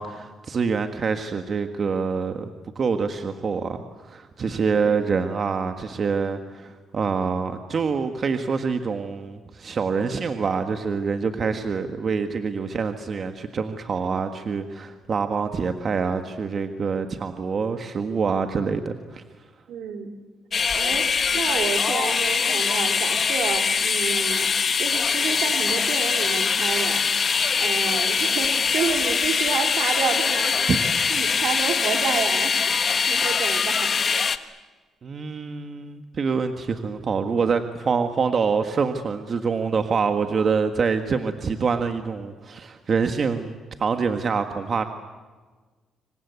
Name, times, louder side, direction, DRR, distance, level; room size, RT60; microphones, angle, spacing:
voice 1, 0.0-2.5 2.8-3.8 4.0-19.2 30.7-30.8 35.0-44.8, right 5 dB, 45° right, 7 dB, 1.7 m, -26 dB
voice 2, 19.7-20.1 20.7-24.5 24.8-30.6 31.1-32.6 33.1-33.9, right 7 dB, 75° right, 5 dB, 3.2 m, -30 dB
sound 1, 20.5-34.4, left 6 dB, 45° left, 1.4 m, -23 dB
27.0 x 24.5 x 8.3 m, 1.4 s
cardioid pair, 90°, 0 cm